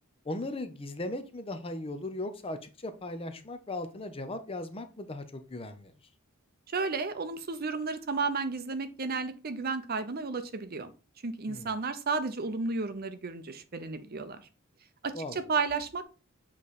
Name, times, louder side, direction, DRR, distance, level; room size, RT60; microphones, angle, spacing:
voice 1, 0.3-5.9 11.5-11.7 15.1-15.4, left 2 dB, 25° left, 9 dB, 0.7 m, -38 dB
voice 2, 6.7-10.9 11.2-14.4 15.0-16.0, right 4 dB, 45° right, 10 dB, 0.7 m, -32 dB
7.6 x 3.2 x 4.1 m, 0.33 s
head